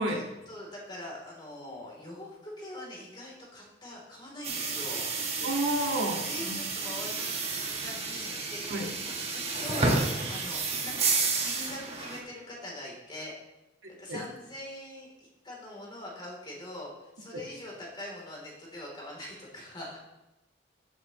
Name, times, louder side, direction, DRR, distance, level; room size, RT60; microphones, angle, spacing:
voice 1, 0.0-5.5 6.3-7.4 7.6-11.0 11.4-13.3 13.9-20.0, left 1 dB, 25° left, -3 dB, 3.2 m, -43 dB
sound 1, 4.4-12.2, right 3 dB, 35° right, 1.5 m, -31 dB
voice 2, 5.4-6.5 8.7-8.9 13.8-14.2 17.3-17.4, right 1 dB, 85° right, 0 dB, 1.8 m, -31 dB
14.0 x 7.8 x 3.1 m, 0.97 s
head